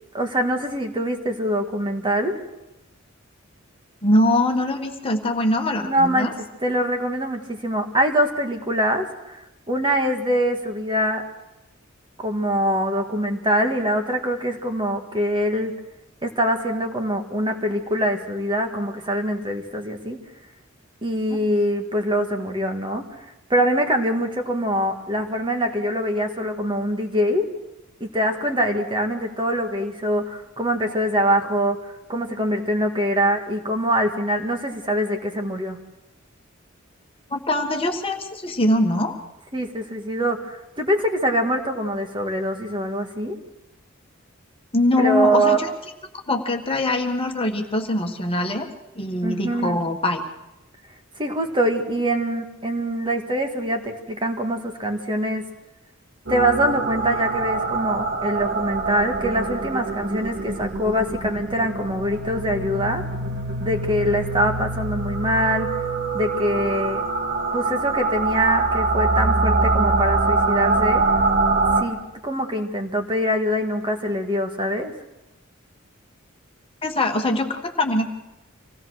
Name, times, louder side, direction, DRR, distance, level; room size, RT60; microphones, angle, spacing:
voice 1, 0.1-2.4 5.8-6.3 6.6-9.4 9.7-11.2 12.2-15.7 16.2-20.2 21.0-23.0 23.5-27.5 28.0-31.8 32.1-35.8 39.5-43.4 45.0-45.6 49.2-49.8 51.2-55.4 56.3-63.0 63.6-65.7 66.1-67.0 67.5-71.0 71.8-74.9, equal, 25° right, 4 dB, 1.8 m, -24 dB
voice 2, 4.0-6.3 21.3-21.4 37.3-39.2 44.7-45.7 46.3-48.7 48.9-50.2 76.8-78.1, left 1 dB, 25° left, 3 dB, 1.6 m, -22 dB
sound 1, 56.3-71.8, right 3 dB, 60° right, 2.3 m, -24 dB
25.5 x 17.0 x 6.4 m, 0.96 s
head